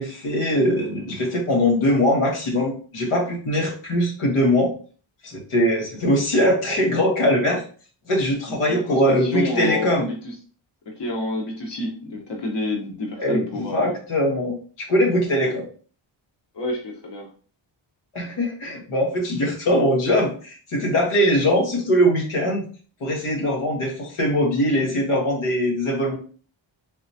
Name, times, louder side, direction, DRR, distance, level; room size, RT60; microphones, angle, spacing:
voice 1, 0.0-4.7 5.2-7.6 8.1-10.1 13.2-14.5 14.9-15.6 18.1-22.7 23.0-26.2, equal, 80° left, -2 dB, 1.2 m, -21 dB
voice 2, 8.7-10.3 10.9-14.0 15.4-15.5 16.5-17.3, left 1 dB, 55° left, 1 dB, 1.2 m, -29 dB
4.0 x 3.1 x 2.7 m, 0.41 s
cardioid pair, 55°, 49 cm